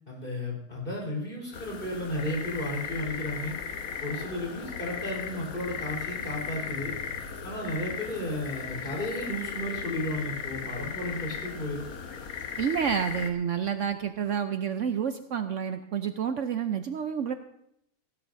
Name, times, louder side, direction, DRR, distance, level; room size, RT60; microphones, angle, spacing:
voice 1, 0.1-3.5 4.0-6.9 7.4-11.8, left 1 dB, 35° left, -3 dB, 4.4 m, -33 dB
sound 1, 1.5-13.3, left 6 dB, 80° left, 1.5 m, -37 dB
voice 2, 12.6-17.3, right 8 dB, 65° right, 8 dB, 0.9 m, -29 dB
16.5 x 16.5 x 2.7 m, 0.77 s
omnidirectional pair, 1.5 m